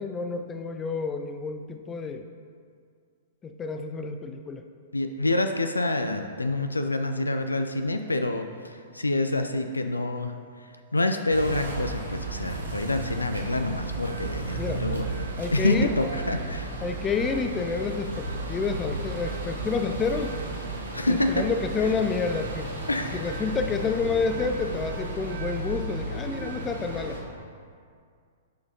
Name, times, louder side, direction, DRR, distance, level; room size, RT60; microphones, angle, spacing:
voice 1, 0.0-2.2 3.4-4.6 14.6-14.8 15.4-15.9 16.8-20.4 21.1-22.7 23.1-27.2, left 5 dB, 20° left, 6 dB, 0.4 m, -29 dB
voice 2, 4.9-10.3 10.9-16.7 20.9-21.5 21.8-21.9 22.9-23.3, left 2 dB, 80° left, 7 dB, 0.4 m, -27 dB
sound 1, 11.3-27.2, right 2 dB, 70° right, 1.0 m, -34 dB
11.5 x 5.5 x 2.7 m, 2.2 s
figure-of-eight pair, 105°, 0 cm